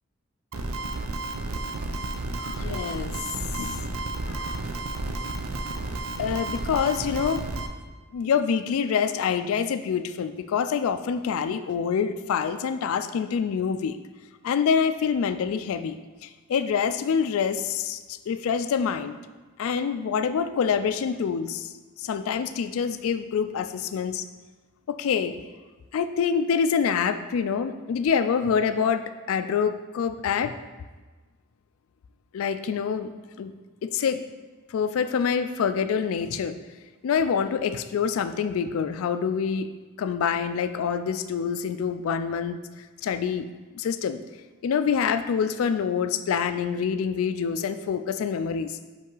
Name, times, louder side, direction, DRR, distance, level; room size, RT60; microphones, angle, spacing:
sound 1, 0.5-7.7, right 2 dB, 90° right, 0.6 m, -32 dB
voice 1, 2.4-3.2 3.6-3.9 4.3-4.6 6.2-7.5 8.1-14.0 14.4-19.2 19.6-24.3 24.9-25.3 25.9-30.5 32.3-33.1 33.4-33.5 33.8-34.2 34.7-36.6 37.0-39.7 40.0-43.5 43.7-44.2 44.6-48.8, left 6 dB, 85° left, 10 dB, 0.3 m, -26 dB
5.4 x 5.4 x 3.8 m, 1.3 s
head